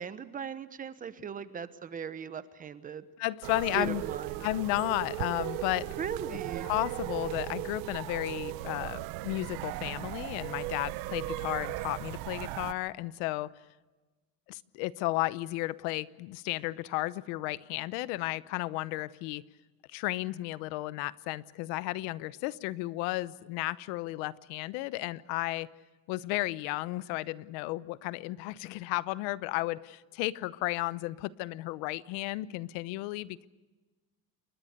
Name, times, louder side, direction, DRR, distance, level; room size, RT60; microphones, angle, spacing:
voice 1, 0.0-3.0 3.7-4.4 6.0-6.7, right 7 dB, 25° right, 13 dB, 1.1 m, -38 dB
voice 2, 3.2-4.0 4.4-5.9 6.6-13.5 14.5-19.4 19.9-25.7 26.1-33.5, left 19 dB, 85° left, 17 dB, 1.0 m, -33 dB
sound 1, 3.4-12.7, right 17 dB, 75° right, 1.0 m, -37 dB
28.5 x 22.5 x 6.8 m, 1.2 s
cardioid pair, 160°, 35 cm